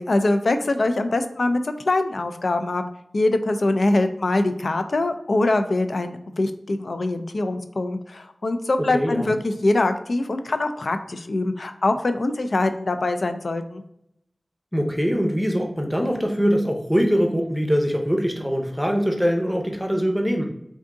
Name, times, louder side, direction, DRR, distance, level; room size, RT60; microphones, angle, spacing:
voice 1, 0.0-2.8 3.1-13.8, left 2 dB, 70° left, 8 dB, 0.3 m, -23 dB
voice 2, 8.8-9.4 14.7-20.5, equal, ahead, 2 dB, 0.7 m, -23 dB
3.5 x 2.6 x 3.7 m, 0.75 s
wide cardioid pair, 60°, 0 cm